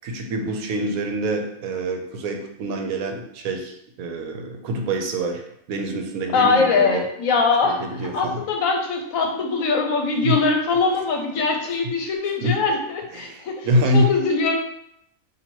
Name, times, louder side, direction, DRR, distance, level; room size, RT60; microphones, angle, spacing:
voice 1, 0.0-5.4 5.7-7.1 7.6-8.4 10.2-10.4 12.4-12.6 13.1-14.1, right 1 dB, 75° right, 4 dB, 1.0 m, -25 dB
voice 2, 6.3-7.8 8.1-13.7 13.9-14.6, left 4 dB, 75° left, 2 dB, 1.0 m, -22 dB
2.9 x 2.6 x 4.4 m, 0.74 s
omnidirectional pair, 1.5 m